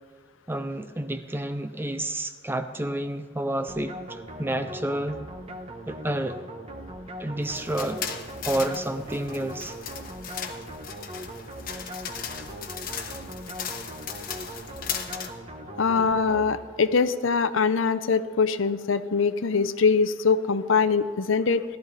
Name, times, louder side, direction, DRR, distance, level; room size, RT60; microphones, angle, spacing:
voice 1, 0.5-5.2 5.9-6.4 7.2-8.2 8.4-9.8, right 1 dB, 10° right, 9 dB, 0.5 m, -30 dB
sound 1, 3.7-17.0, right 1 dB, 30° right, 1.0 m, -40 dB
sound 2, 7.4-15.3, left 7 dB, 45° left, 1.1 m, -37 dB
voice 2, 15.8-21.6, left 5 dB, 70° left, 13 dB, 0.6 m, -23 dB
17.5 x 12.5 x 4.1 m, 1.5 s
head